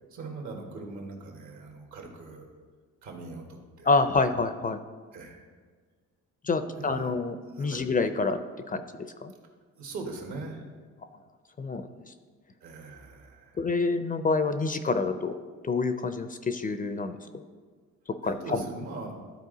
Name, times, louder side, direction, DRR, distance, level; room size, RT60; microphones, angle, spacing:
voice 1, 0.1-2.5 3.0-3.9 5.1-5.4 6.7-7.1 7.5-7.8 9.8-10.6 12.6-13.6 18.2-19.1, right 3 dB, 70° right, 1 dB, 1.7 m, -41 dB
voice 2, 3.8-4.8 6.4-8.4 8.7-8.8 9.2-9.3 11.6-11.8 13.6-15.4 15.6-17.4 18.2-18.6, left 3 dB, 30° left, 10 dB, 0.4 m, -27 dB
12.5 x 4.3 x 3.9 m, 1.6 s
cardioid pair, 90°, 30 cm